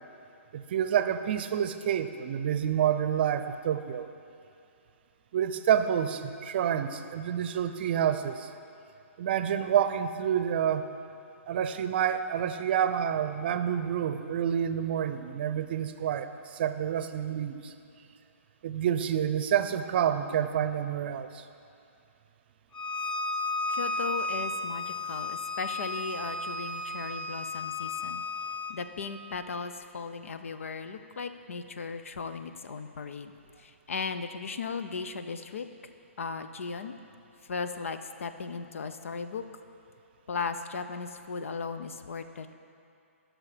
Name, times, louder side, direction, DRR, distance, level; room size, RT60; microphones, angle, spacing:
voice 1, 0.5-4.1 5.3-8.5 9.2-10.9 11.5-17.7 18.6-21.4, right 9 dB, 45° right, 10 dB, 0.6 m, -28 dB
Bowed string instrument, 22.7-28.8, left 2 dB, 15° left, 0.7 m, -33 dB
voice 2, 23.7-28.2 28.7-33.3 33.6-35.7 36.2-36.9 37.4-39.4 40.3-42.5, left 5 dB, 70° left, 9 dB, 0.7 m, -37 dB
15.0 x 6.3 x 5.1 m, 2.5 s
hypercardioid pair, 140°, 7 cm